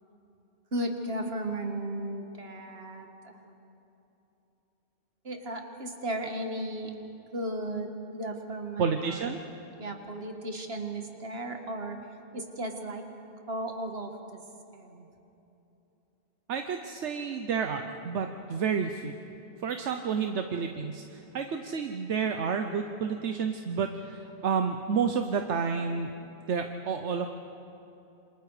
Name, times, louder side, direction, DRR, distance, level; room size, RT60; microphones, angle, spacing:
voice 1, 0.7-3.4 5.2-6.9 7.3-9.3 9.8-12.0 12.3-13.0 13.5-14.4 14.7-15.1, right 1 dB, 60° right, 4 dB, 2.1 m, -35 dB
voice 2, 8.8-9.4 16.5-19.1 19.6-26.1 26.5-27.3, right 6 dB, 80° right, 6 dB, 1.2 m, -30 dB
27.5 x 26.0 x 5.0 m, 2.9 s
omnidirectional pair, 1.2 m